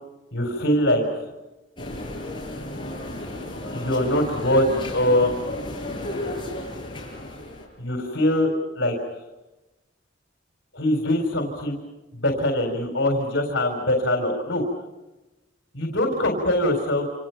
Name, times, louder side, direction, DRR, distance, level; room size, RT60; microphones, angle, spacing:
voice 1, 0.3-1.3 3.7-5.3 7.8-8.5 8.7-8.9 10.7-11.8 12.1-14.6 15.7-17.1, left 1 dB, 70° left, 3 dB, 4.0 m, -23 dB
sound 1, 1.8-7.7, left 1 dB, 25° left, 7.1 m, -33 dB
28.0 x 27.5 x 5.9 m, 1.1 s
head